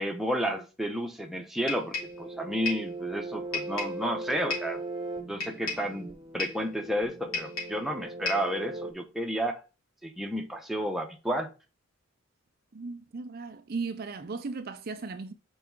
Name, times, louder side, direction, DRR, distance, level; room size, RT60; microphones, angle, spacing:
voice 1, 0.0-4.8 5.3-9.6 10.0-11.5, equal, ahead, 0.8 m, -31 dB
sound 1, 1.7-2.2 2.7-2.9 3.5-4.0 4.5-4.8 5.4-5.9 6.4-6.7 7.3-7.8 8.3-8.5, left 4 dB, 75° left, 3.6 m, -34 dB
sound 2, 1.9-8.9, right 2 dB, 20° right, 1.0 m, -39 dB
voice 2, 12.7-15.3, right 4 dB, 45° right, 0.5 m, -36 dB
5.8 x 4.7 x 4.7 m
head